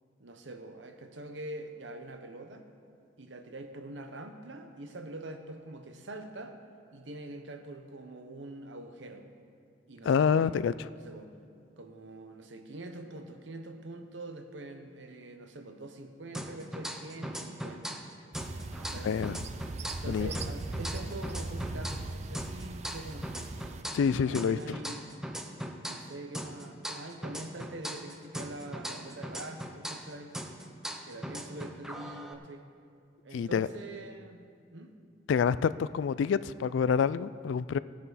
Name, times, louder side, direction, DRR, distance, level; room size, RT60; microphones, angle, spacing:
voice 1, 0.2-2.6 3.2-6.6 6.9-9.3 9.9-10.5 11.1-11.3 11.8-18.0 18.8-19.1 20.0-23.5 24.0-25.1 25.8-30.3 31.0-32.7 33.2-34.9, right 2 dB, 75° right, 6 dB, 1.0 m, -44 dB
voice 2, 10.1-10.7 19.0-19.4 20.1-20.3 23.9-24.8 33.3-33.7 35.3-37.8, left 6 dB, 80° left, 17 dB, 0.3 m, -27 dB
sound 1, 16.3-18.1 18.3-22.1 22.3-26.1 26.3-30.1 30.3-32.3, equal, 5° right, 0.7 m, -39 dB
Tormenta en l'Horta, 18.3-23.8, right 2 dB, 40° right, 0.5 m, -39 dB
17.0 x 9.6 x 4.1 m, 2.3 s
head